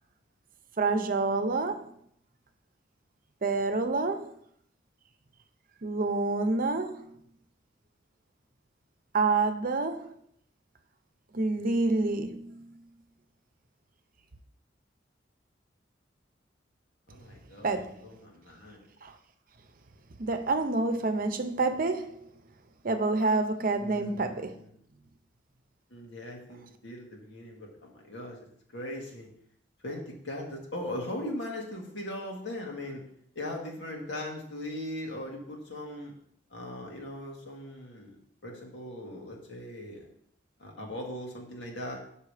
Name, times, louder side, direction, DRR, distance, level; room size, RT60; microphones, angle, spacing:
voice 1, 0.8-1.9 3.4-4.3 5.8-7.1 9.1-10.1 11.3-12.8 17.6-18.0 19.0-19.1 20.2-22.2 22.8-24.5, right 3 dB, 50° right, 0.8 m, -28 dB
voice 2, 17.1-17.8 18.0-18.8 23.8-24.7 25.9-29.3 29.8-33.0 33.4-36.1 36.5-38.2 38.4-40.1 40.6-42.0, left 1 dB, 90° left, 1.9 m, -39 dB
6.8 x 5.4 x 5.0 m
head